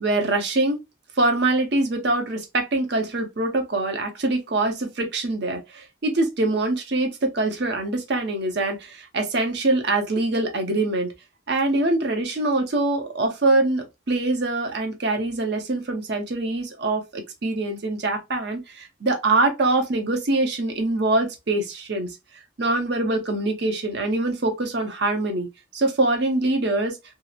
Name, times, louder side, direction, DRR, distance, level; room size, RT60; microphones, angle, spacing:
voice 1, 0.0-0.8 1.2-11.1 11.5-22.1 22.6-25.5 25.7-27.0, right 2 dB, 55° right, 0.7 m, -24 dB
2.8 x 2.0 x 2.3 m
head